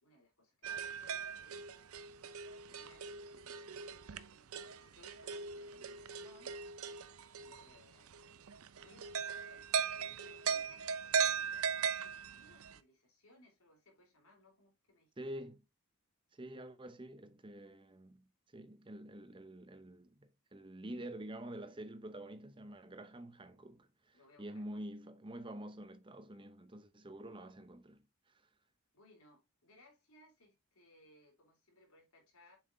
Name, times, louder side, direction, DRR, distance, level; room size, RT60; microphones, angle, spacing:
voice 1, 0.0-1.6 2.6-6.6 7.3-11.0 11.2-11.5 11.8-15.5 24.1-24.9 28.9-32.6, left 1 dB, 80° left, 3.9 m, -65 dB
sound 1, 0.6-12.8, right 6 dB, 75° right, 0.6 m, -39 dB
voice 2, 15.2-15.6 16.3-28.0, right 1 dB, 20° right, 0.7 m, -48 dB
7.6 x 5.8 x 2.7 m
head